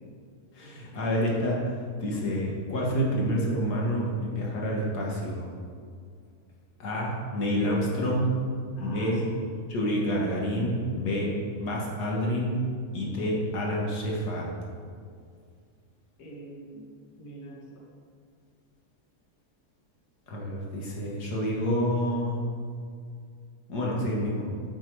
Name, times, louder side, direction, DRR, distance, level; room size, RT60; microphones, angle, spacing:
voice 1, 0.5-1.6 2.0-5.5 6.8-8.3 8.8-9.2 9.7-11.3 11.6-12.6 12.9-14.5 20.3-22.4 23.7-24.5, equal, 85° left, -3 dB, 2.0 m, -28 dB
voice 2, 7.6-8.2 8.8-9.5 16.2-17.9, equal, 65° left, -2 dB, 1.9 m, -42 dB
8.7 x 7.1 x 4.7 m, 2.2 s
omnidirectional pair, 1.7 m